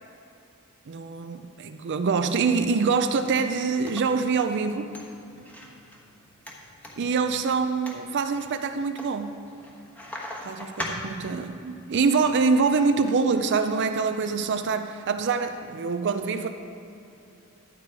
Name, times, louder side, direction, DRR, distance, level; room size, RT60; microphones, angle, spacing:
voice 1, 0.9-4.9 7.0-9.3 10.4-16.5, right 4 dB, 55° right, 8 dB, 0.5 m, -25 dB
sound 1, 3.3-11.5, left 1 dB, 5° left, 1.2 m, -41 dB
11.5 x 8.3 x 4.7 m, 2.6 s
head